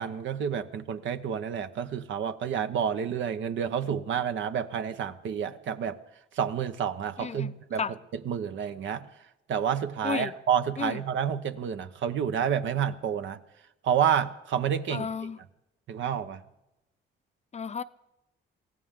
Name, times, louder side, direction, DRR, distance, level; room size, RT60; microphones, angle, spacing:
voice 1, 0.0-6.0 6.4-7.8 8.2-9.1 9.5-13.4 13.8-15.1 15.9-16.4, right 8 dB, 70° right, 1.0 m, -29 dB
voice 2, 7.2-7.5 7.8-7.9 10.0-10.3 10.8-11.0 14.9-15.4 17.5-17.8, left 6 dB, 35° left, 0.6 m, -32 dB
24.0 x 16.0 x 3.7 m
cardioid pair, 90°, 20 cm